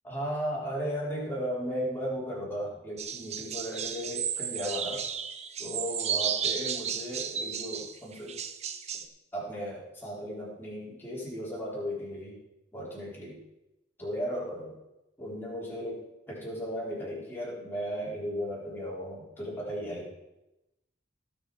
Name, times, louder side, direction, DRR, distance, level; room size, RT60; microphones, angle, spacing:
voice 1, 0.0-5.0 5.6-8.4 9.3-12.4 12.7-13.4 14.0-14.7 15.2-20.1, equal, 10° left, -6 dB, 4.0 m, -35 dB
sound 1, 3.0-9.0, right 7 dB, 35° right, 0.7 m, -33 dB
18.0 x 6.3 x 4.9 m, 0.93 s
head